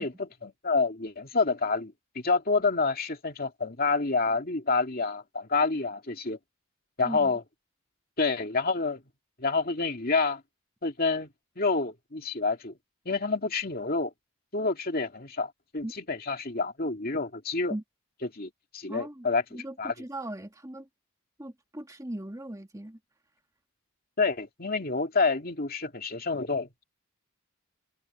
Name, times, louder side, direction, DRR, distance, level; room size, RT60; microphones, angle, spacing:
voice 1, 0.0-6.4 7.0-7.4 8.2-9.0 9.4-10.4 10.8-11.3 11.6-12.7 13.1-14.1 14.5-17.7 18.3-19.9 24.2-26.8, left 4 dB, 40° left, 2.5 m, -28 dB
voice 2, 18.9-20.9 21.4-23.0, right 1 dB, 15° right, 1.7 m, -39 dB
open air
head